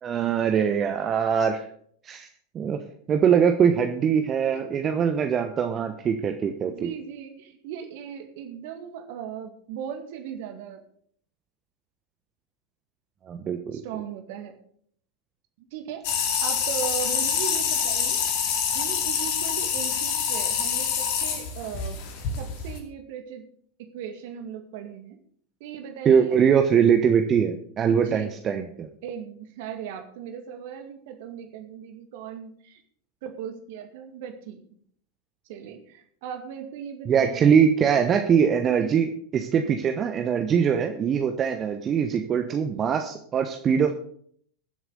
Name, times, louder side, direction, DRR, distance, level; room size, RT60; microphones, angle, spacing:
voice 1, 0.0-1.7 2.0-2.3 2.5-2.8 3.1-6.9 13.3-13.8 26.0-28.9 37.1-43.9, right 7 dB, 25° right, 5 dB, 1.1 m, -22 dB
voice 2, 4.5-5.0 6.6-10.8 13.7-14.5 15.6-18.2 18.7-22.0 22.4-23.4 23.8-25.2 25.6-26.4 27.9-28.3 29.0-32.8 33.2-34.6 35.5-37.6 38.6-39.0, right 8 dB, 50° right, 6 dB, 2.1 m, -38 dB
sound 1, 16.0-22.8, left 7 dB, 50° left, 2.4 m, -26 dB
22.0 x 7.8 x 4.0 m, 0.62 s
figure-of-eight pair, 90°, 0 cm